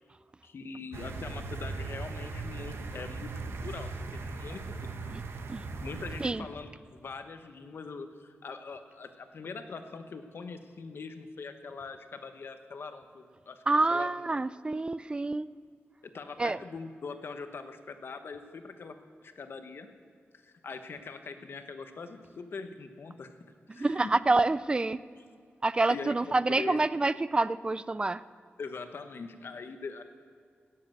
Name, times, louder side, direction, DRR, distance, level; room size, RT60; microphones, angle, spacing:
voice 1, 0.4-5.2 5.8-13.6 13.9-14.1 16.0-19.9 20.4-23.3 23.7-24.1 25.9-26.8 28.6-30.0, left 4 dB, 65° left, 7 dB, 1.0 m, -42 dB
sound 1, 0.9-6.3, right 3 dB, 75° right, 1.0 m, -38 dB
voice 2, 13.7-15.5 16.4-16.6 23.7-25.0 25.6-28.2, right 2 dB, 25° right, 16 dB, 0.3 m, -27 dB
16.5 x 7.6 x 7.7 m, 2.1 s
wide cardioid pair, 140°, 4 cm